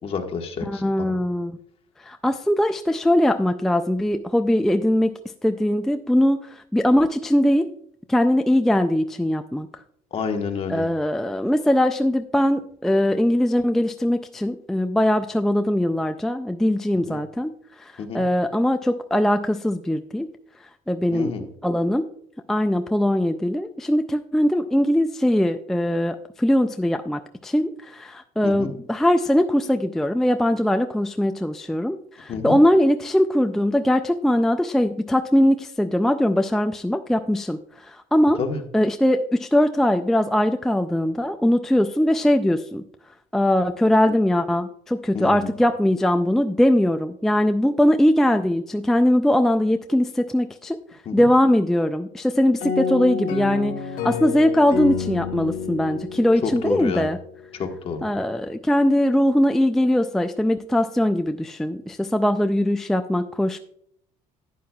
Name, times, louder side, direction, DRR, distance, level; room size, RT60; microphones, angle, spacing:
voice 1, 0.0-1.1 10.1-10.9 17.1-17.2 18.0-18.2 21.1-21.4 28.4-28.7 32.3-32.6 38.4-38.6 45.1-45.6 51.0-51.3 56.4-57.1 57.5-58.1, left 5 dB, 40° left, 4 dB, 1.3 m, -29 dB
voice 2, 0.7-1.6 2.0-7.7 8.1-9.7 10.7-20.3 20.9-21.3 21.6-22.1 22.5-38.4 38.7-42.8 43.3-50.8 51.1-57.2 58.0-63.6, left 1 dB, 5° left, 7 dB, 0.3 m, -21 dB
sound 1, 52.6-57.2, left 6 dB, 65° left, 1.0 m, -29 dB
11.0 x 9.4 x 2.3 m, 0.67 s
cardioid pair, 130°, 15 cm